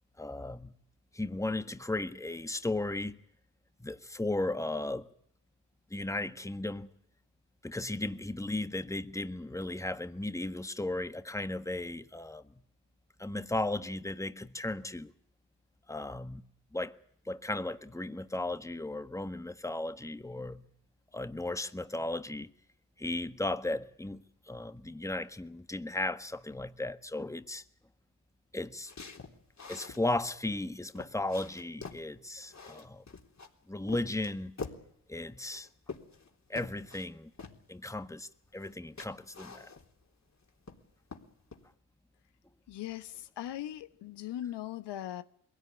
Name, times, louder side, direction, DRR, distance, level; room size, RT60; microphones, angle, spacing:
voice 1, 0.2-0.7 1.1-3.2 3.8-5.1 5.9-6.9 7.6-12.4 13.2-15.1 15.9-16.4 16.7-16.9 17.2-20.6 21.1-22.5 23.0-27.6 28.5-28.9 29.7-33.0 33.7-34.5 35.1-35.7 36.5-37.3 37.7-39.7, left 2 dB, 5° left, 1.5 m, -35 dB
sound 1, 28.9-30.0 30.5-30.6 30.9-32.1 32.5-33.5 33.9-34.9 35.5-36.3 36.6-37.1 37.4-37.6 38.6-38.7 39.0-40.0 40.4-40.8 41.1-41.6, left 4 dB, 40° left, 3.7 m, -45 dB
voice 2, 42.7-45.2, left 12 dB, 75° left, 1.2 m, -39 dB
23.0 x 17.0 x 9.8 m
hypercardioid pair, 45°, 42 cm